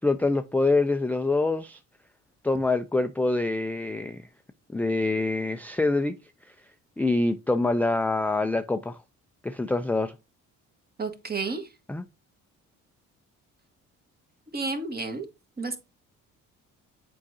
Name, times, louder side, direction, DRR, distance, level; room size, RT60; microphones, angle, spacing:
voice 1, 0.0-1.8 2.4-4.2 4.7-6.2 7.0-9.0 9.4-10.1 11.9-12.0, left 2 dB, 5° left, 0.4 m, -25 dB
voice 2, 11.0-11.7 14.5-15.3 15.6-15.8, right 3 dB, 30° right, 1.5 m, -31 dB
7.3 x 4.8 x 2.7 m
cardioid pair, 80°, 32 cm